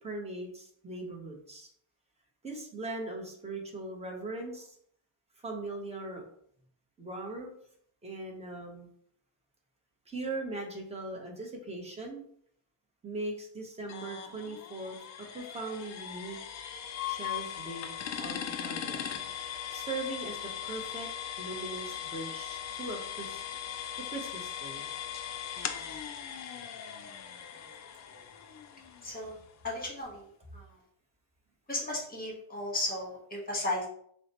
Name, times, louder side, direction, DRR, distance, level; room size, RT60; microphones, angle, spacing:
voice 1, 0.0-1.7 2.4-4.7 5.4-6.3 7.0-7.5 8.0-8.9 10.1-12.2 13.0-16.4 17.1-17.9 18.2-19.1 19.7-21.1 21.4-23.4 24.1-24.9, right 2 dB, 15° right, 0 dB, 0.9 m, -40 dB
sound 1, 13.9-29.6, left 9 dB, 40° left, 0.4 m, -39 dB
voice 2, 29.0-29.4 29.6-30.3 30.5-30.6 31.7-33.9, left 1 dB, 20° left, -2 dB, 1.3 m, -34 dB
6.1 x 2.2 x 2.9 m, 0.66 s
cardioid pair, 130°, 48 cm